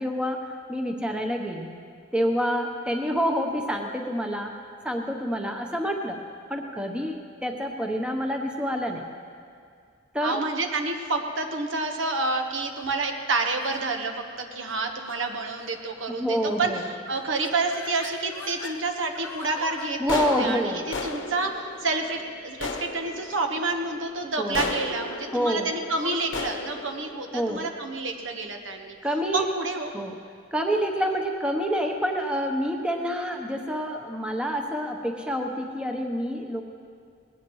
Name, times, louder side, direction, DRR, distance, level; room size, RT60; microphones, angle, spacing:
voice 1, 0.0-1.7 2.1-4.5 4.8-6.2 6.5-9.0 10.1-10.4 16.2-16.8 20.0-20.9 24.4-24.7 25.3-25.7 27.3-27.6 29.0-29.5 29.9-30.1 30.5-36.6, equal, 5° right, 2 dB, 0.9 m, -27 dB
voice 2, 10.2-28.9 29.3-29.9, right 3 dB, 70° right, 4 dB, 1.3 m, -29 dB
sound 1, 12.7-13.1 13.6-13.9 14.6-14.8 15.1-15.2 15.5-15.9 16.5-16.8 17.1-18.8 19.2-28.3, left 3 dB, 70° left, 1.0 m, -36 dB
20.0 x 18.0 x 3.2 m, 2.2 s
head